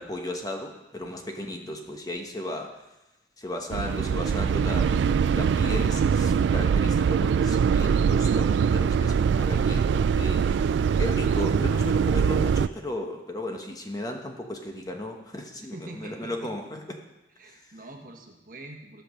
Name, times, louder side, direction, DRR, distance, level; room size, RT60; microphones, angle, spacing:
voice 1, 0.0-2.8 3.4-16.8 17.4-17.7, left 1 dB, 20° left, 3 dB, 1.0 m, -35 dB
voice 2, 1.0-1.8 15.6-16.5 17.4-19.0, right 2 dB, 50° right, 2 dB, 1.4 m, -46 dB
sound 1, 3.7-12.7, right 6 dB, 85° right, 0.3 m, -23 dB
13.5 x 5.8 x 6.4 m, 0.99 s
head